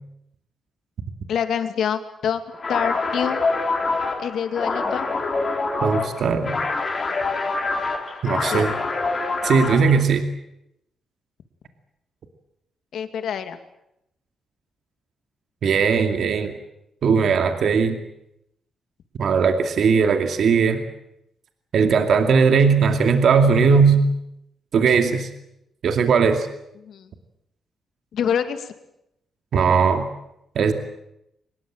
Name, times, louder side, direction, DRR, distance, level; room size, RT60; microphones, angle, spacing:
voice 1, 1.3-2.4 2.7-3.4 4.2-5.1 8.5-8.6 12.9-13.6 26.8-27.1 28.1-28.7, left 8 dB, 65° left, 8 dB, 2.4 m, -26 dB
sound 1, 2.6-10.0, left 3 dB, 30° left, 3.8 m, -25 dB
voice 2, 5.8-6.6 8.2-8.7 9.4-10.2 15.6-16.5 17.0-18.0 19.2-20.8 21.7-24.0 24.7-25.3 25.8-26.5 29.5-30.1 30.6-30.7, right 5 dB, 55° right, 6 dB, 2.5 m, -18 dB
24.0 x 21.0 x 9.0 m, 0.82 s
wide cardioid pair, 160°, 0 cm